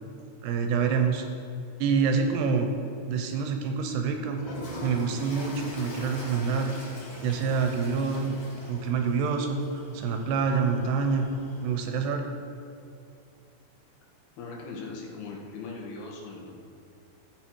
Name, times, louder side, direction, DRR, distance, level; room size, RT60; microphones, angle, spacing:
voice 1, 0.4-1.2 1.8-2.7 3.1-4.4 4.8-6.7 7.2-8.4 8.7-11.3 11.6-12.2, right 5 dB, 75° right, 5 dB, 2.7 m, -26 dB
Toilet flush, 4.3-11.9, left 1 dB, 50° left, 1.4 m, -42 dB
voice 2, 14.4-16.5, left 3 dB, 65° left, -1 dB, 3.2 m, -39 dB
14.5 x 8.7 x 4.7 m, 2.4 s
omnidirectional pair, 5.2 m